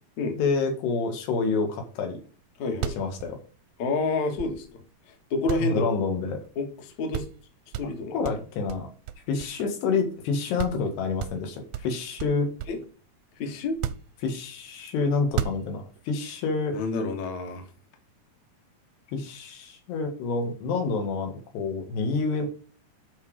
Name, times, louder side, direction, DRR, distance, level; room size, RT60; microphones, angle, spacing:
voice 1, 0.4-2.2 3.0-3.4 5.6-6.4 8.1-8.9 9.3-12.5 14.2-16.8 19.1-22.5, left 4 dB, 90° left, 4 dB, 3.9 m, -28 dB
sound 1, 2.4-2.5 2.7-4.9 5.5-6.5 6.8-6.9 7.1-7.4 7.7-9.9 10.2-10.3 10.6-10.9 11.2-12.9 13.7-14.6 15.2-16.0, right 10 dB, 80° right, 2.1 m, -35 dB
voice 2, 2.6-2.9 3.8-5.9 6.6-7.2 7.8-8.2 12.7-12.8 13.4-13.8 16.7-17.7, left 3 dB, 55° left, 4 dB, 2.5 m, -29 dB
11.5 x 4.1 x 5.0 m, 0.39 s
omnidirectional pair, 4.7 m